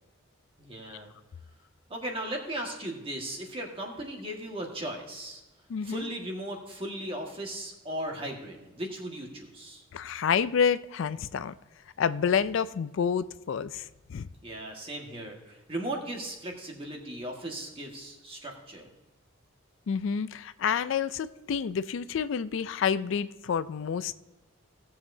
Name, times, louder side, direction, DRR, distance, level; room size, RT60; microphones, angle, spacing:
voice 1, 0.6-1.1 1.9-5.4 5.8-9.8 14.4-18.9, right 1 dB, 25° right, 0 dB, 1.6 m, -37 dB
voice 2, 5.7-6.1 9.9-11.5 12.0-14.3 19.9-24.1, left 7 dB, 70° left, 14 dB, 0.4 m, -29 dB
17.0 x 7.3 x 2.7 m, 1.1 s
head